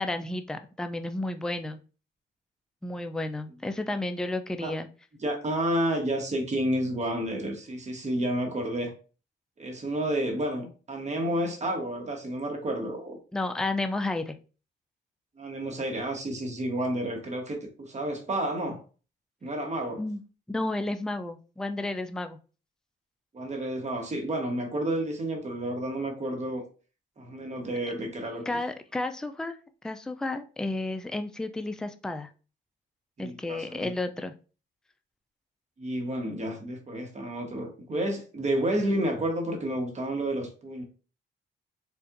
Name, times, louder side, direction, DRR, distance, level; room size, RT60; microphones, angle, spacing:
voice 1, 0.0-1.8 2.8-4.9 13.3-14.4 20.0-20.2 20.5-22.4 28.0-28.1 28.5-29.6 29.8-32.3 33.2-34.3, left 2 dB, 5° left, 8 dB, 0.4 m, -32 dB
voice 2, 5.2-8.9 9.6-13.2 15.4-18.8 19.4-20.0 23.3-26.7 27.2-28.6 33.2-33.9 35.8-40.8, right 1 dB, 35° right, 2 dB, 1.2 m, -30 dB
4.5 x 2.5 x 2.5 m, 0.36 s
cardioid pair, 90°, 20 cm